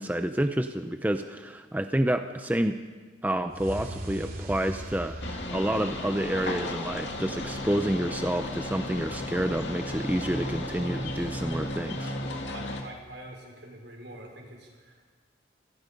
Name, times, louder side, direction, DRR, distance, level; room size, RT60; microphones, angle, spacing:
voice 1, 0.0-2.8 3.2-12.1, right 1 dB, 10° right, 7 dB, 0.6 m, -29 dB
sound 1, 3.5-6.7, right 1 dB, 50° right, 2.9 m, -39 dB
sound 2, 3.8-13.1, equal, 5° left, 5.0 m, -50 dB
sound 3, 5.2-12.8, left 1 dB, 65° left, 2.3 m, -34 dB
voice 2, 12.5-15.1, right 1 dB, 65° right, 1 dB, 5.2 m, -45 dB
27.0 x 18.5 x 5.3 m, 1.5 s
head